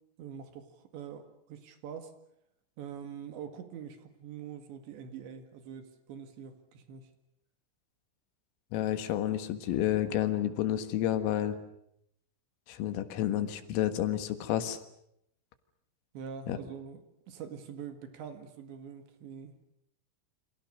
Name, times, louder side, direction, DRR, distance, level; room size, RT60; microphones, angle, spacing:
voice 1, 0.2-2.1 2.8-7.1 16.1-19.7, right 7 dB, 65° right, 8 dB, 3.9 m, -44 dB
voice 2, 8.7-11.6 12.7-14.8 16.5-16.6, left 12 dB, 80° left, 9 dB, 4.3 m, -30 dB
29.0 x 26.5 x 6.6 m, 0.75 s
omnidirectional pair, 5.9 m